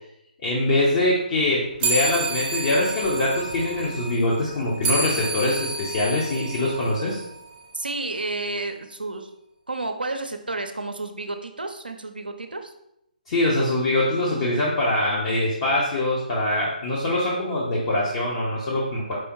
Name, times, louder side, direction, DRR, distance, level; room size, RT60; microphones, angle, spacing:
voice 1, 0.4-7.2 13.3-19.1, left 1 dB, 35° left, -5 dB, 0.8 m, -23 dB
sound 1, 1.8-7.6, right 2 dB, 20° right, 0.7 m, -30 dB
voice 2, 7.7-9.3 9.7-12.7, right 2 dB, 80° right, 6 dB, 0.6 m, -31 dB
4.8 x 3.4 x 3.0 m, 0.81 s
figure-of-eight pair, 140°, 5 cm